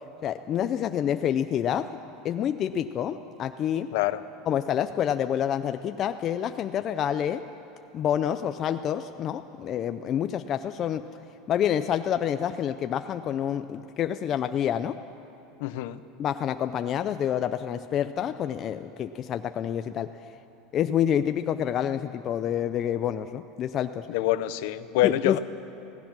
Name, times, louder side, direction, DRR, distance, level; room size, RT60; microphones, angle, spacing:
voice 1, 0.2-2.0 2.2-3.9 4.5-7.4 7.9-11.0 11.5-15.0 16.2-20.1 20.7-24.1 25.0-25.4, left 9 dB, 25° left, 9 dB, 0.4 m, -28 dB
voice 2, 15.6-16.0 24.1-25.4, left 15 dB, 60° left, 13 dB, 0.7 m, -26 dB
26.0 x 17.5 x 6.0 m, 2.9 s
supercardioid pair, 180°, 0 cm